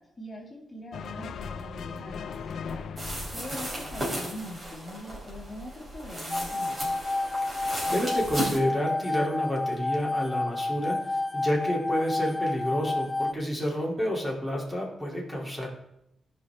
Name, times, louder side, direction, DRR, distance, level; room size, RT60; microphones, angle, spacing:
voice 1, 0.0-6.9, left 1 dB, 25° left, -3 dB, 2.0 m, -43 dB
sound 1, 0.9-4.4, left 6 dB, 75° left, 0.5 m, -39 dB
sound 2, 3.0-8.6, right 1 dB, 30° right, 3.5 m, -35 dB
sound 3, 6.3-13.3, left 2 dB, 10° left, 0.4 m, -30 dB
voice 2, 7.5-15.7, equal, 5° right, -2 dB, 2.5 m, -30 dB
14.0 x 5.5 x 3.4 m, 0.81 s
cardioid pair, 95°, 0 cm